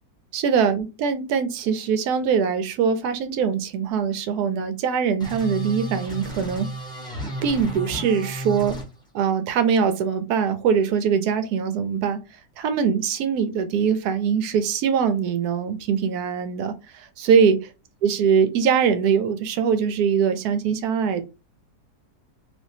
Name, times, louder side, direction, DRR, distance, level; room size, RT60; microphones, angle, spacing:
voice 1, 0.3-6.7 7.4-8.8 9.1-12.2 12.6-17.6 18.0-21.2, right 6 dB, 70° right, 10 dB, 1.1 m, -22 dB
sound 1, 5.2-8.8, right 1 dB, 5° left, 0.7 m, -32 dB
3.4 x 2.7 x 2.7 m, 0.28 s
omnidirectional pair, 1.8 m